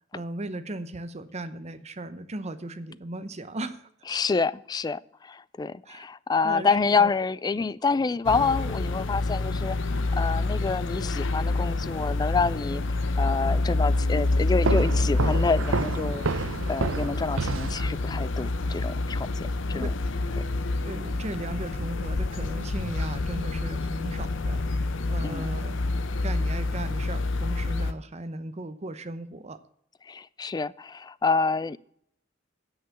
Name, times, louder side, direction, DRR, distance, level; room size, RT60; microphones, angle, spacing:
voice 1, 0.1-3.9 5.9-6.0 6.4-7.1 19.8-19.9 20.8-24.6 25.1-25.8 26.2-29.6, right 2 dB, 35° right, 0.8 m, -36 dB
voice 2, 4.1-12.8 13.2-19.9 25.2-25.5 30.1-31.8, left 4 dB, 20° left, 0.3 m, -28 dB
sound 1, 8.3-27.9, left 2 dB, 70° left, 0.8 m, -27 dB
sound 2, 14.6-18.3, right 4 dB, 90° right, 0.7 m, -30 dB
9.6 x 5.8 x 8.2 m
head